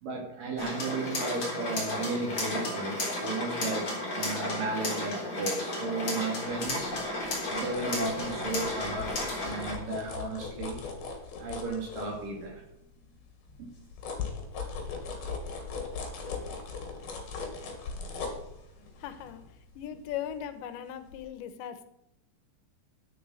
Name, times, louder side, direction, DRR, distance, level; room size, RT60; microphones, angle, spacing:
voice 1, 0.0-7.0 7.5-10.8 11.4-12.6 13.6-13.7, right 3 dB, 55° right, 1 dB, 3.7 m, -34 dB
sound 1, 0.6-9.7, left 1 dB, 30° left, 5.1 m, -33 dB
sound 2, 6.5-12.7 13.2-20.7 21.1-21.2, left 4 dB, 60° left, 4.0 m, -40 dB
voice 2, 19.0-19.4 19.8-21.9, left 10 dB, 85° left, 10 dB, 3.2 m, -38 dB
10.0 x 9.1 x 7.8 m, 0.82 s
omnidirectional pair, 5.2 m